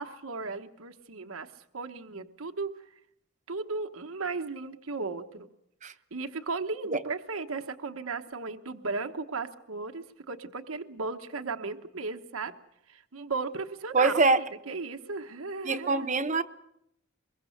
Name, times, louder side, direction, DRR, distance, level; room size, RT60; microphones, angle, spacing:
voice 1, 0.0-1.5 1.7-2.7 3.5-5.5 6.1-12.5 12.9-16.1, right 4 dB, 80° right, 1.1 m, -36 dB
voice 2, 13.9-14.4 15.6-16.4, right 3 dB, 35° right, 0.9 m, -24 dB
23.5 x 22.5 x 6.6 m
head